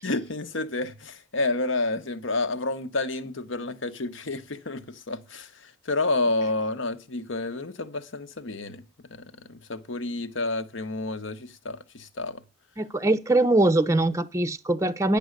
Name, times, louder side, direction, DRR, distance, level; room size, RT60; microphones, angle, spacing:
voice 1, 0.0-12.4, left 2 dB, 80° left, 1.1 m, -30 dB
voice 2, 12.8-15.2, right 2 dB, 15° right, 0.5 m, -22 dB
10.0 x 7.0 x 6.5 m
head